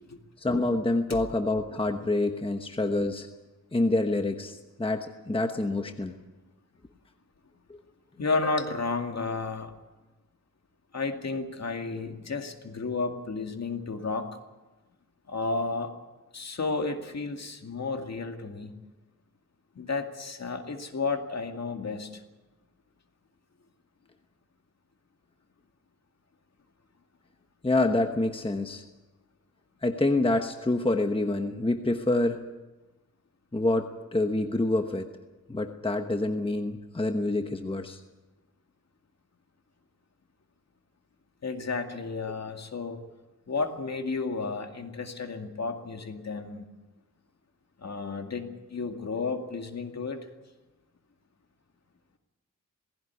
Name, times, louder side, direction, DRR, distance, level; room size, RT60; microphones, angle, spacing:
voice 1, 0.4-3.3 3.7-6.1 7.7-7.8 27.6-28.8 29.8-32.4 33.5-35.1 35.5-38.0, left 2 dB, 15° left, 6 dB, 1.1 m, -27 dB
voice 2, 8.2-9.7 10.9-14.3 15.3-15.9 16.3-18.7 19.8-22.2 41.4-43.0 43.5-46.6 47.8-50.3, left 4 dB, 55° left, 4 dB, 2.3 m, -32 dB
18.5 x 16.5 x 9.7 m, 1.1 s
wide cardioid pair, 135°, 32 cm